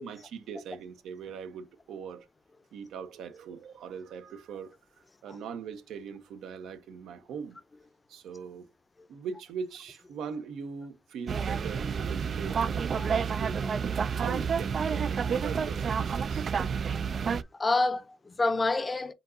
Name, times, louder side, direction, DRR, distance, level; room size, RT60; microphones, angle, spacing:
voice 1, 0.0-2.3 2.7-4.8 5.2-7.6 8.1-8.7 9.1-16.5, right 6 dB, 80° right, 0.9 m, -41 dB
sound 1, 11.3-17.4, right 6 dB, 50° right, 0.4 m, -29 dB
voice 2, 17.3-19.1, left 3 dB, 25° left, 0.7 m, -28 dB
4.4 x 3.8 x 2.7 m
cardioid pair, 90°, 0 cm